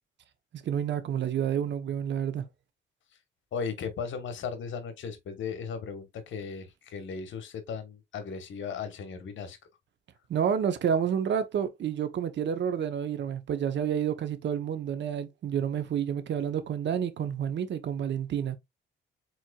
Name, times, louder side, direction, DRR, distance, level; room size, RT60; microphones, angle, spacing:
voice 1, 0.5-2.4 10.3-18.6, right 8 dB, 60° right, 0.9 m, -29 dB
voice 2, 3.5-9.6, left 6 dB, 70° left, 1.2 m, -36 dB
4.6 x 4.3 x 2.3 m
cardioid pair, 85°, 20 cm